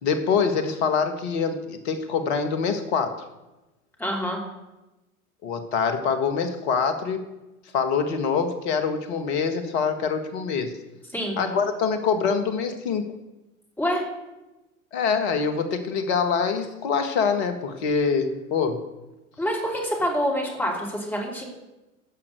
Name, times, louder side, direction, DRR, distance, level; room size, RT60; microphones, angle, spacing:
voice 1, 0.0-3.2 5.4-7.2 7.7-10.7 11.4-13.1 14.9-18.8, left 5 dB, 50° left, 8 dB, 1.7 m, -25 dB
voice 2, 4.0-4.4 11.1-11.4 13.8-14.0 19.4-21.4, equal, 5° left, -1 dB, 2.9 m, -26 dB
16.0 x 5.8 x 6.6 m, 1.0 s
figure-of-eight pair, 90°, 43 cm